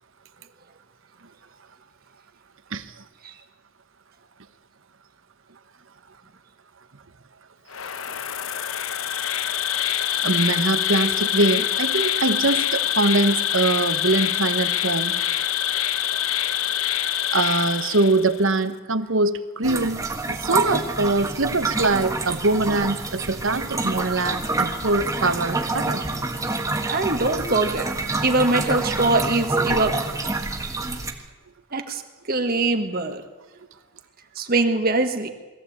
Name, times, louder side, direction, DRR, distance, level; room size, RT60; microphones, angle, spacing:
voice 1, 2.7-3.0 10.2-15.2 17.3-26.0 33.0-33.1, right 2 dB, 65° right, 12 dB, 1.1 m, -23 dB
Insect, 7.7-18.5, left 11 dB, 75° left, 0.9 m, -25 dB
sound 1, 19.6-31.1, right 3 dB, 15° right, 1.5 m, -27 dB
voice 2, 26.9-27.9 28.2-30.0 31.7-32.0 32.3-33.2 34.3-35.3, right 2 dB, 45° right, 6 dB, 1.5 m, -22 dB
21.5 x 15.0 x 8.6 m, 1.2 s
head